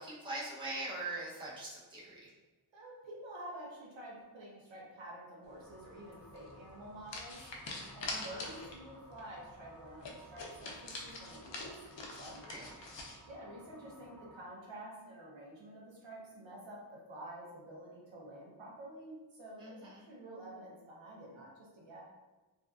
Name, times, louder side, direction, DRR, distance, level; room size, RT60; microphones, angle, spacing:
voice 1, 0.0-2.3 8.1-8.5 12.4-12.9 19.6-20.0, right 2 dB, 10° right, -7 dB, 0.7 m, -42 dB
voice 2, 2.7-7.4 7.9-11.7 12.2-12.7 13.3-22.0, right 1 dB, 65° right, -4 dB, 0.8 m, -49 dB
sound 1, 5.6-14.4, right 1 dB, 5° left, 0.3 m, -58 dB
sound 2, 6.3-6.5 7.1-8.9 9.2-9.3 9.5-9.6 10.0-13.2, left 2 dB, 65° left, 0.6 m, -44 dB
2.6 x 2.3 x 2.3 m, 1.2 s
wide cardioid pair, 70°, 48 cm